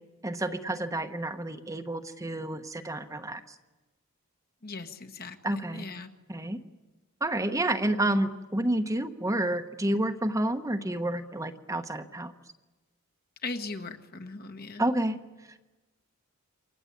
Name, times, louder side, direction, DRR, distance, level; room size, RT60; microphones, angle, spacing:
voice 1, 0.2-3.5 5.4-5.9 6.3-6.6 7.2-12.3 14.8-15.2, right 1 dB, 15° right, 7 dB, 1.1 m, -29 dB
voice 2, 4.6-6.1 13.4-14.8, left 3 dB, 45° left, 6 dB, 1.6 m, -39 dB
28.5 x 23.5 x 8.6 m, 1.2 s
head